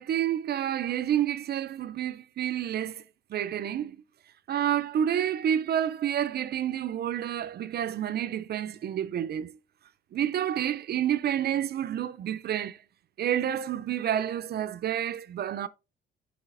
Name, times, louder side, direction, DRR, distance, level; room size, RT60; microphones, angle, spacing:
voice 1, 0.0-3.0 3.3-4.0 4.5-9.6 10.1-12.8 13.2-15.7, right 10 dB, 55° right, 0.4 m, -29 dB
8.0 x 4.8 x 2.5 m
cardioid pair, 90°, 20 cm